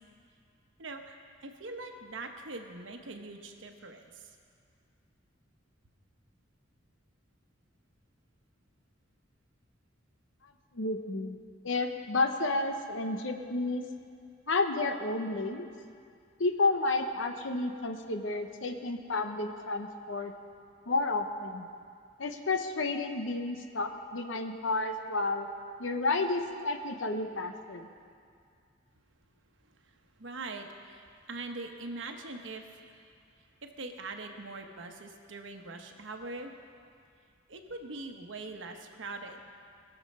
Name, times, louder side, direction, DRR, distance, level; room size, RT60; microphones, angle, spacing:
voice 1, 0.8-4.4 29.7-33.0 33.6-36.5 37.5-39.4, right 3 dB, 75° right, 4 dB, 1.1 m, -42 dB
voice 2, 10.7-11.4 11.6-13.8 14.5-15.7 16.4-20.3 20.9-21.7 22.2-25.5 25.8-27.9, left 3 dB, 75° left, 6 dB, 0.9 m, -31 dB
20.5 x 7.2 x 5.4 m, 2.3 s
head